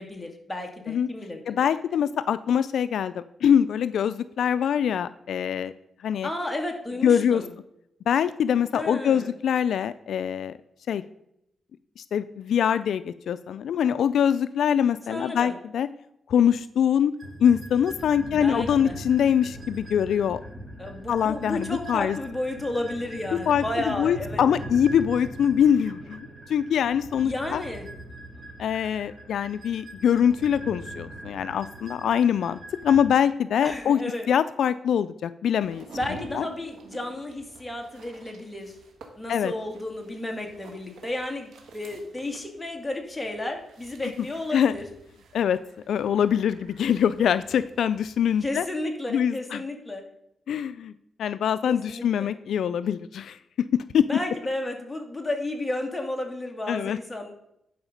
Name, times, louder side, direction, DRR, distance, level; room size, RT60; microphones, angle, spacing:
voice 1, 0.0-1.7 6.2-7.5 8.7-9.3 15.1-15.6 18.3-19.0 20.8-24.4 27.2-27.9 33.6-34.3 35.9-38.8 39.2-44.9 48.4-50.0 51.7-52.3 54.1-57.3, left 1 dB, 10° left, 2 dB, 2.0 m, -32 dB
voice 2, 1.5-5.7 6.0-6.3 7.0-7.4 8.1-10.6 10.9-11.0 12.0-15.9 16.3-17.1 17.4-20.4 21.1-22.2 23.3-27.6 28.6-32.6 32.8-34.0 34.3-35.9 36.3-36.5 39.3-39.5 44.5-44.7 45.3-45.6 45.9-48.6 49.1-49.6 50.5-50.9 51.2-53.4 53.7-54.2 56.7-57.0, left 8 dB, 80° left, 14 dB, 0.3 m, -23 dB
sound 1, 17.2-33.0, right 1 dB, 20° right, 3.0 m, -41 dB
sound 2, 35.6-48.4, right 3 dB, 80° right, 1.6 m, -48 dB
11.0 x 5.0 x 5.1 m, 0.79 s
cardioid pair, 90°, 0 cm